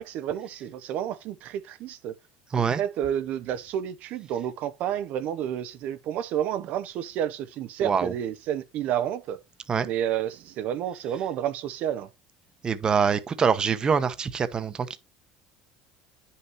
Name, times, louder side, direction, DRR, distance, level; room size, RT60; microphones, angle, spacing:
voice 1, 0.0-2.1 2.7-9.4 9.8-12.1, right 10 dB, 60° right, 0.6 m, -30 dB
voice 2, 7.8-8.1 9.7-9.9 12.6-15.0, right 6 dB, 25° right, 0.9 m, -24 dB
9.8 x 5.5 x 3.0 m
supercardioid pair, 120°, 3 cm